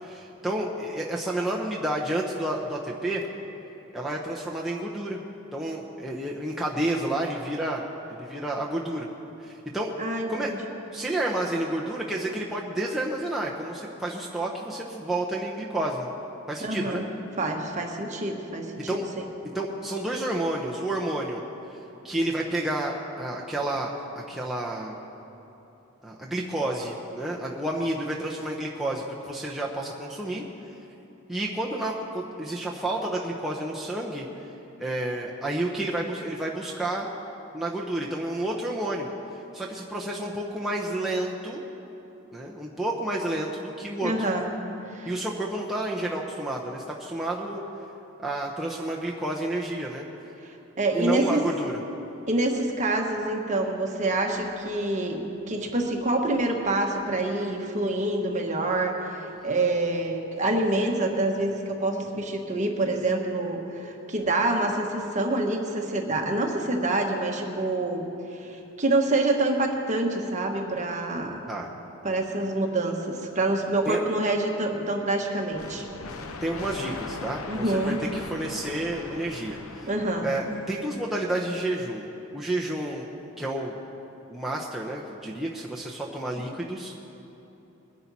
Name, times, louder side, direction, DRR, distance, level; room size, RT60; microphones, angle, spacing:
voice 1, 0.0-3.2 3.9-5.2 5.5-7.8 8.1-9.1 9.4-9.9 10.3-10.5 10.9-16.1 16.5-17.0 18.9-19.0 19.5-21.4 21.7-21.8 22.0-23.9 24.3-25.0 26.0-30.4 31.3-34.3 34.8-37.1 37.5-39.1 39.5-41.6 42.3-44.3 45.1-47.6 48.2-50.1 50.9-51.8 71.5-71.7 73.8-74.0 76.4-79.9 80.2-82.1 82.3-83.1 83.4-83.7 84.3-86.9, right 1 dB, ahead, -4 dB, 0.8 m, -30 dB
voice 2, 10.0-10.6 16.6-17.1 17.4-19.3 44.0-44.4 44.9-45.1 50.8-51.5 52.3-55.2 55.5-68.1 68.3-71.4 72.0-75.8 77.5-78.0 79.9-80.3, right 2 dB, 35° right, 1 dB, 1.3 m, -26 dB
sound 1, 75.5-81.1, left 3 dB, 85° left, 0.8 m, -39 dB
21.5 x 10.5 x 4.2 m, 3.0 s
head